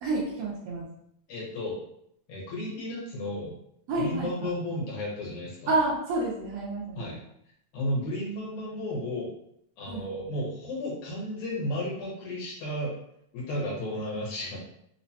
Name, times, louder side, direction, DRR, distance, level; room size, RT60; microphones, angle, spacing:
voice 1, 0.0-0.9 3.9-4.5 5.7-7.2 9.9-10.0, right 2 dB, 85° right, -5 dB, 1.4 m, -29 dB
voice 2, 1.3-1.8 2.3-3.6 4.0-5.7 7.0-7.2 7.7-9.3 9.8-13.0 13.3-14.6, left 1 dB, 75° left, -5 dB, 2.2 m, -33 dB
4.9 x 2.1 x 2.6 m, 0.74 s
omnidirectional pair, 3.6 m